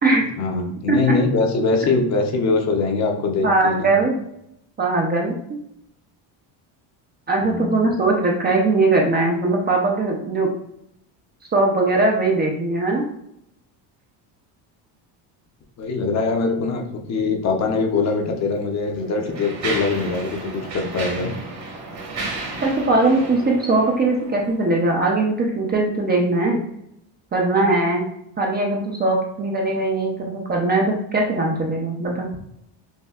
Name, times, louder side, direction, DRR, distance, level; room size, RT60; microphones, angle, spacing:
voice 1, 0.4-3.9 7.4-7.8 15.8-21.3, left 3 dB, 40° left, 3 dB, 0.6 m, -22 dB
voice 2, 3.4-4.2 4.8-5.3 7.3-10.5 11.5-13.0 22.6-26.6 27.3-28.1 28.4-32.3, right 2 dB, 25° right, 0 dB, 0.4 m, -20 dB
Mechanisms, 18.0-18.1 18.8-24.6, right 3 dB, 40° right, 1.1 m, -33 dB
5.4 x 2.6 x 2.3 m, 0.75 s
cardioid pair, 140°, 45 cm